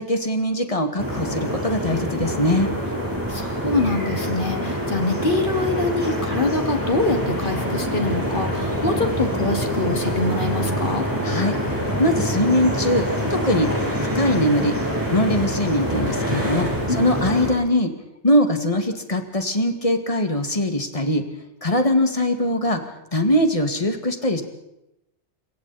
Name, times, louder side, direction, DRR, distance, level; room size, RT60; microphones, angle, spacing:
voice 1, 0.0-2.7 11.2-11.6 12.0-13.7 14.1-14.8 15.1-17.9 18.2-21.2 21.6-24.4, left 1 dB, 30° left, 6 dB, 2.2 m, -21 dB
sound 1, 1.0-17.5, equal, 15° right, 6.5 m, -25 dB
voice 2, 3.3-11.1 16.9-17.0, left 2 dB, 45° left, 4 dB, 2.9 m, -24 dB
27.0 x 22.5 x 4.2 m, 0.88 s
omnidirectional pair, 1.1 m